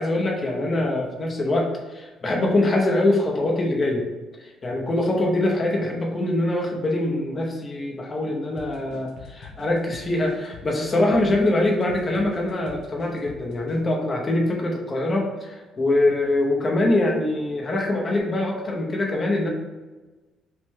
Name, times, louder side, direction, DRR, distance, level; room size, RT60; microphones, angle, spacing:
voice 1, 0.0-4.0 4.4-19.5, left 2 dB, 25° left, -1 dB, 0.8 m, -23 dB
sound 1, 8.6-13.8, left 5 dB, 80° left, 0.8 m, -44 dB
5.6 x 2.2 x 3.6 m, 1.2 s
cardioid pair, 135°, 0 cm